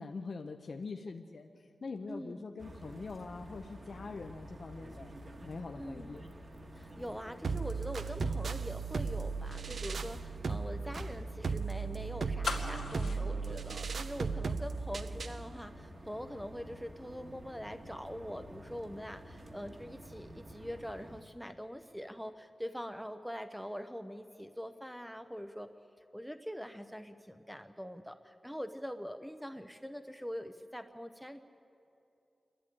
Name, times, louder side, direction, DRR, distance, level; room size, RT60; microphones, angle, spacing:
voice 1, 0.0-5.1 5.4-6.2, left 4 dB, 50° left, 5 dB, 0.7 m, -43 dB
voice 2, 2.1-2.4 5.8-6.1 6.7-25.7 26.1-31.4, equal, ahead, 7 dB, 0.6 m, -43 dB
sound 1, 2.6-21.2, right 1 dB, 35° right, 1.4 m, -50 dB
sound 2, 7.4-15.4, right 4 dB, 60° right, 0.6 m, -36 dB
sound 3, 12.4-14.5 14.8-14.9, left 4 dB, 90° left, 2.4 m, -39 dB
27.0 x 11.5 x 9.9 m, 2.8 s
wide cardioid pair, 130°, 0 cm